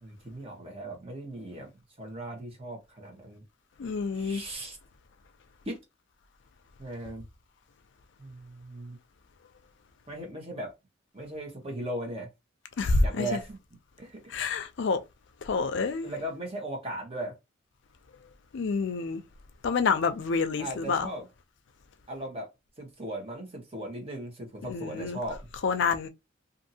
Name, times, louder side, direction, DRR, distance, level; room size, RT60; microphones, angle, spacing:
voice 1, 0.0-1.7 2.0-3.4 4.1-4.8 5.6-5.8 6.8-7.3 8.2-9.0 10.1-10.7 11.1-12.3 13.0-13.6 14.0-14.6 16.0-17.3 20.6-21.3 22.1-22.5 22.8-25.4, right 1 dB, 30° right, 1.0 m, -38 dB
voice 2, 3.8-4.4 12.8-13.3 14.3-15.0 15.5-16.1 18.5-19.2 19.6-21.1 24.7-25.2 25.6-26.1, left 4 dB, 65° left, 0.4 m, -27 dB
2.6 x 2.6 x 2.7 m
head